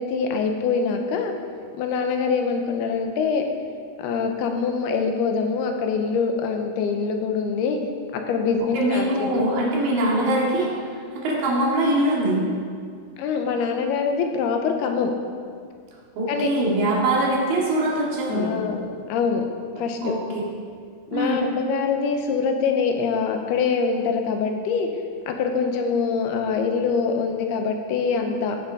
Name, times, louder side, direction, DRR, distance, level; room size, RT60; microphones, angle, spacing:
voice 1, 0.0-1.3 1.8-3.4 4.0-7.8 8.1-9.6 13.2-15.1 16.3-16.5 18.3-19.5 19.8-20.1 21.1-24.9 25.3-28.6, left 5 dB, 85° left, 4 dB, 3.0 m, -24 dB
voice 2, 8.7-10.7 11.1-12.4 16.2-18.5 20.0-20.2 21.1-21.4, right 1 dB, 65° right, -4 dB, 3.9 m, -22 dB
16.0 x 7.3 x 5.0 m, 2.1 s
omnidirectional pair, 4.5 m